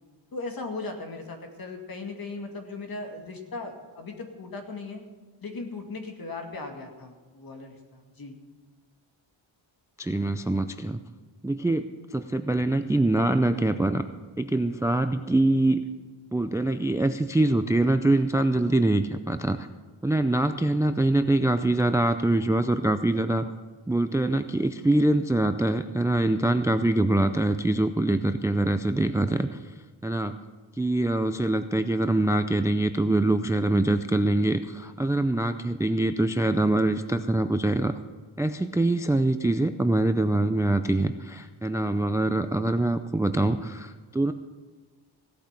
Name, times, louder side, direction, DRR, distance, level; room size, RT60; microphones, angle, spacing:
voice 1, 0.3-5.0 5.4-8.4, left 3 dB, 45° left, 3 dB, 2.3 m, -38 dB
voice 2, 10.0-11.0 11.4-11.9 12.1-14.0 14.4-15.8 16.3-19.7 20.0-23.4 23.9-29.6 30.0-30.4 30.8-37.9 38.4-44.3, right 2 dB, 5° right, 10 dB, 0.4 m, -24 dB
17.0 x 8.6 x 5.9 m, 1.4 s
wide cardioid pair, 130°, 47 cm